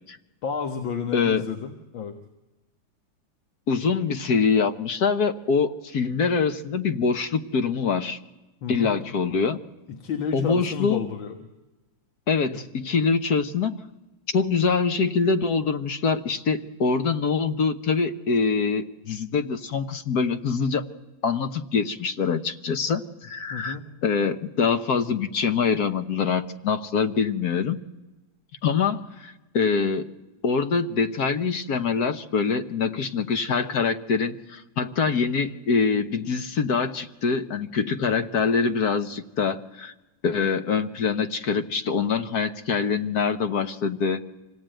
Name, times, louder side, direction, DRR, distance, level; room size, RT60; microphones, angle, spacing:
voice 1, 0.4-2.1 8.6-8.9 9.9-11.4 12.5-12.6 23.5-23.8 38.1-38.2, left 6 dB, 80° left, 4 dB, 2.2 m, -31 dB
voice 2, 1.1-1.5 3.7-8.2 8.7-9.6 10.3-11.1 12.3-13.8 14.3-20.8 21.2-27.8 28.6-30.1 30.4-39.9 40.2-44.2, left 5 dB, 55° left, 9 dB, 1.5 m, -24 dB
26.0 x 17.5 x 9.0 m, 1.1 s
omnidirectional pair, 2.1 m